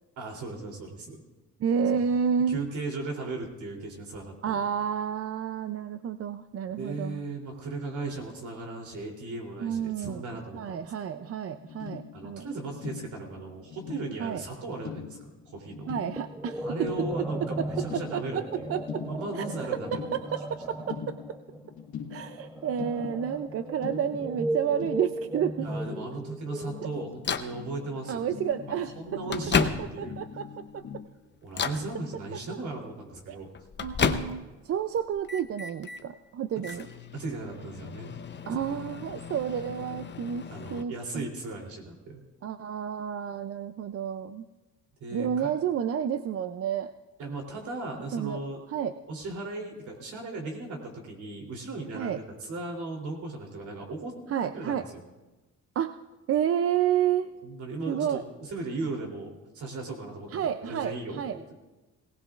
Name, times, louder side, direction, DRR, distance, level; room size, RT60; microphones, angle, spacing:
voice 1, 0.2-1.2 2.0-2.1 2.5-4.6 6.7-11.3 12.1-16.0 16.6-18.7 19.0-20.1 25.6-28.2 29.0-30.2 31.4-33.5 36.7-36.8 37.1-38.2 40.5-42.2 45.0-45.5 47.2-48.6 49.1-54.1 54.5-55.0 57.4-61.6, right 3 dB, 75° right, 1 dB, 3.3 m, -37 dB
voice 2, 1.6-2.6 4.4-7.2 9.6-10.2 10.5-12.5 14.2-14.4 15.9-16.9 17.6-19.0 19.4-19.5 19.9-21.1 22.1-25.7 28.1-29.2 29.8-30.8 33.3-33.4 33.8-36.9 38.5-41.2 42.4-44.4 45.1-46.9 48.1-48.4 48.7-48.9 51.9-52.2 54.3-54.8 55.8-56.0 56.3-57.3 57.9-58.2 60.3-61.4, right 8 dB, 50° right, 10 dB, 0.5 m, -30 dB
sound 1, 11.2-11.3 11.5-31.1, left 7 dB, 75° left, 1.4 m, -43 dB
sound 2, 16.2-27.5, right 1 dB, 5° right, 0.6 m, -36 dB
Microwave oven, 27.2-27.6 28.5-28.6 29.1-30.2 30.7-31.0 31.5-31.9 33.1-34.6 35.0-36.0 36.6-40.8, left 6 dB, 35° left, 0.8 m, -32 dB
18.5 x 18.0 x 2.5 m, 1.1 s
cardioid pair, 90°, 30 cm